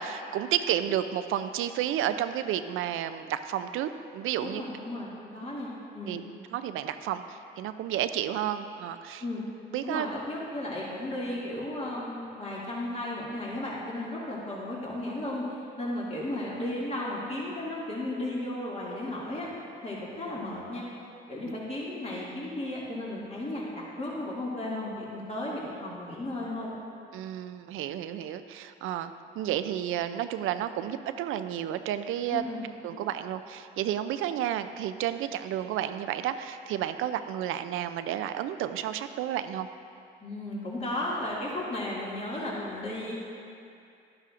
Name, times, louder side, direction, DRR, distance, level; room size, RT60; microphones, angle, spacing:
voice 1, 0.0-4.6 6.1-6.2 6.5-9.2 9.7-10.1 21.5-21.6 27.1-29.1 29.4-32.4 32.8-39.7, right 11 dB, 75° right, 10 dB, 0.5 m, -31 dB
voice 2, 4.4-6.2 9.2-9.4 9.8-19.5 19.8-20.8 21.3-26.7 32.3-32.6 40.2-43.1, left 1 dB, 30° left, -6 dB, 2.2 m, -34 dB
12.0 x 9.7 x 2.5 m, 2.5 s
supercardioid pair, 60°, 21 cm